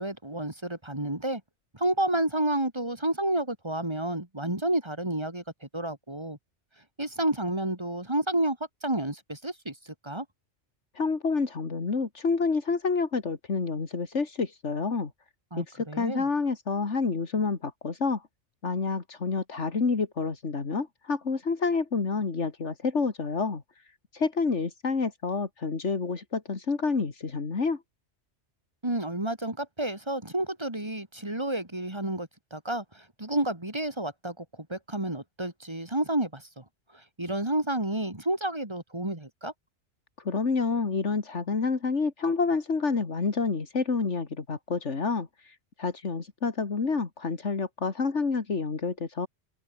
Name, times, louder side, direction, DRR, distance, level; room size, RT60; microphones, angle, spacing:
voice 1, 0.0-1.4 1.7-5.4 5.7-6.4 7.0-8.6 8.8-10.3 15.5-16.2 28.8-34.4 34.7-36.6 36.9-39.5, right 1 dB, 25° right, 2.7 m, -30 dB
voice 2, 10.9-15.1 15.6-18.2 18.6-23.6 24.1-27.8 40.2-49.3, left 4 dB, 80° left, 2.5 m, -28 dB
open air
omnidirectional pair, 1.2 m